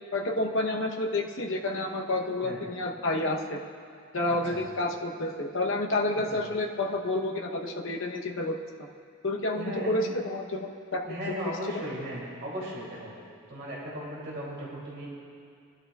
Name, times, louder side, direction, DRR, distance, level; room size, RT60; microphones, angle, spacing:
voice 1, 0.1-3.6 4.1-8.9 9.2-11.0, left 2 dB, 60° left, 1 dB, 0.9 m, -29 dB
voice 2, 4.3-4.6 6.2-6.3 9.6-9.9 11.0-13.1 13.5-15.1, equal, 50° right, -6 dB, 2.7 m, -37 dB
21.5 x 11.5 x 2.4 m, 2.3 s
head